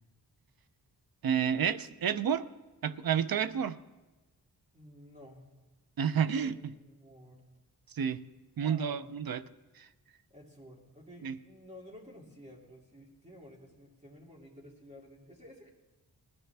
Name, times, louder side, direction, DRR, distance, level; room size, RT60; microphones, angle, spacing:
voice 1, 1.2-2.5 2.8-3.8 6.0-6.6 8.0-8.2 8.6-9.4 9.8-9.9 11.2-11.4, right 8 dB, 60° right, 14 dB, 0.6 m, -30 dB
voice 2, 4.7-5.5 6.3-7.5 8.6-9.2 10.3-15.7, equal, 15° right, -3 dB, 2.6 m, -52 dB
20.0 x 14.0 x 3.4 m, 1.1 s
wide cardioid pair, 130°, 41 cm